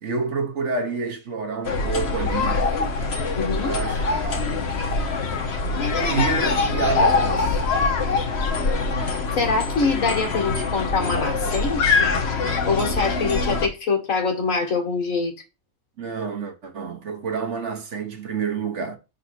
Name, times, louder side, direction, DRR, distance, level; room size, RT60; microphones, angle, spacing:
voice 1, 0.0-2.7 3.6-4.6 5.9-7.6 16.0-19.0, right 5 dB, 55° right, 1.3 m, -29 dB
sound 1, 1.6-13.7, left 4 dB, 50° left, 1.2 m, -23 dB
voice 2, 3.3-3.7 9.4-12.1 12.6-15.3, left 4 dB, 65° left, 1.9 m, -24 dB
5.7 x 4.2 x 4.3 m
omnidirectional pair, 1.5 m